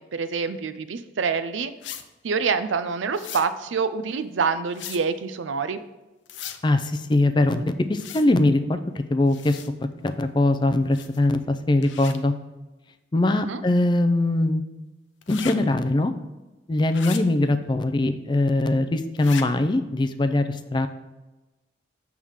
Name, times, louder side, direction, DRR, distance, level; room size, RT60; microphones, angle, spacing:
voice 1, 0.0-1.7 2.2-5.8 13.3-13.6, right 5 dB, 90° right, 12 dB, 0.5 m, -26 dB
sound 1, 1.8-2.0 3.1-3.5 4.7-5.0 6.3-6.6 7.9-8.3 9.3-9.7 10.9-11.2 11.8-12.2 15.2-15.5 16.9-17.2 19.2-19.4, left 9 dB, 80° left, 0.6 m, -37 dB
voice 2, 6.6-12.3 13.1-14.6 15.3-16.1 16.7-20.9, left 2 dB, 25° left, 9 dB, 0.4 m, -22 dB
7.2 x 3.6 x 6.3 m, 1.1 s
head